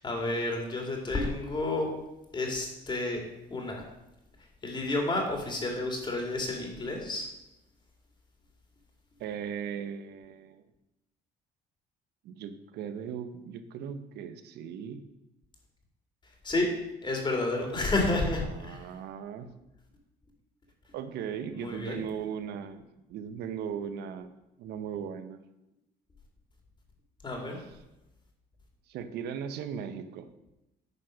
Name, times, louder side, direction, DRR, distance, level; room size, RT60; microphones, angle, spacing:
voice 1, 0.0-1.9 2.3-3.2 3.5-3.8 4.6-7.3 16.4-16.7 17.0-18.8 21.6-22.0 27.2-27.6, left 2 dB, 25° left, 1 dB, 2.5 m, -30 dB
voice 2, 9.2-10.6 12.2-15.0 18.4-19.5 20.9-24.3 24.6-25.4 27.5-27.8 28.9-30.3, right 8 dB, 75° right, 10 dB, 0.9 m, -38 dB
9.7 x 4.9 x 6.3 m, 0.93 s
cardioid pair, 110°, 17 cm